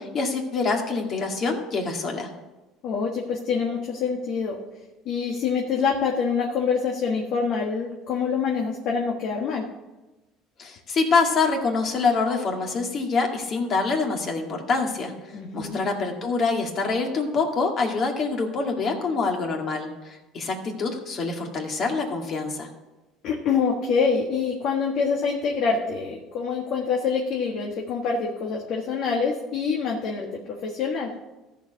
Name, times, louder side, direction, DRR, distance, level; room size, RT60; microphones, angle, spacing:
voice 1, 0.0-2.3 10.6-15.1 15.5-22.7, left 4 dB, 45° left, 2 dB, 2.1 m, -25 dB
voice 2, 2.8-4.6 5.0-9.7 15.3-15.8 23.2-31.1, left 5 dB, 60° left, 0 dB, 1.5 m, -26 dB
14.0 x 4.8 x 6.6 m, 1.1 s
supercardioid pair, 100°, 0 cm